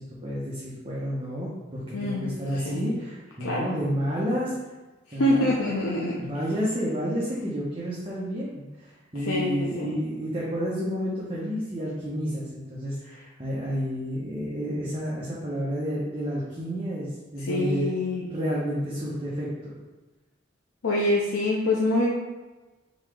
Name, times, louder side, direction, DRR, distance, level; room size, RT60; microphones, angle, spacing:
voice 1, 0.0-4.5 5.1-5.5 6.2-17.9 18.2-19.7, equal, 25° right, -7 dB, 0.7 m, -30 dB
voice 2, 1.9-2.9 3.4-3.7 5.2-6.2 9.2-9.9 17.5-18.2 20.8-22.1, left 1 dB, 80° left, -4 dB, 0.6 m, -25 dB
4.0 x 2.8 x 4.7 m, 1.2 s
head